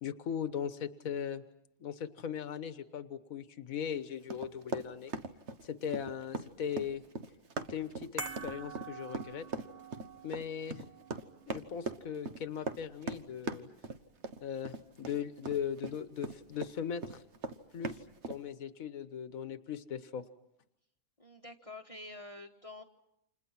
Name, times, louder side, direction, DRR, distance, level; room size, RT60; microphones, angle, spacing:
voice 1, 0.0-1.4 1.8-5.1 5.6-7.0 7.7-9.5 10.2-10.9 11.5-13.7 14.4-17.2 17.7-20.2, left 8 dB, 75° left, 10 dB, 1.6 m, -39 dB
Run, 4.3-16.7 17.0-18.4, right 3 dB, 55° right, 1.5 m, -40 dB
sound 1, 8.2-14.6 14.9-15.0, right 4 dB, 30° right, 1.3 m, -48 dB
voice 2, 21.2-22.8, left 2 dB, 25° left, 5 dB, 1.4 m, -47 dB
30.0 x 27.5 x 5.9 m, 0.78 s
omnidirectional pair, 1.5 m